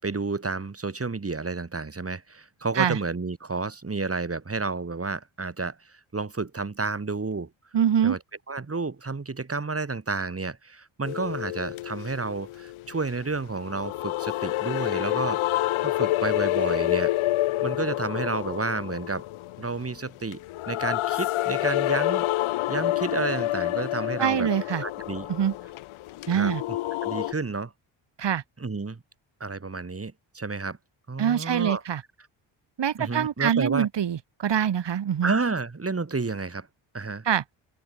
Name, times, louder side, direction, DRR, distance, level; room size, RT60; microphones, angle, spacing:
voice 1, 0.0-7.5 8.0-8.2 8.5-17.1 17.6-19.2 19.6-20.4 20.7-22.3 22.7-24.5 24.8-25.3 26.3-27.7 28.6-29.0 29.4-30.8 31.1-31.8 33.0-33.9 35.2-36.7 36.9-37.3, right 3 dB, 30° right, 7.0 m, -31 dB
voice 2, 7.7-8.2 24.2-24.8 25.3-25.5 26.3-26.6 28.2-28.4 31.2-32.0 32.8-35.3 37.2-37.4, right 9 dB, 60° right, 5.0 m, -24 dB
sound 1, 11.0-27.3, left 16 dB, 90° left, 6.6 m, -28 dB
open air
supercardioid pair, 65°, 48 cm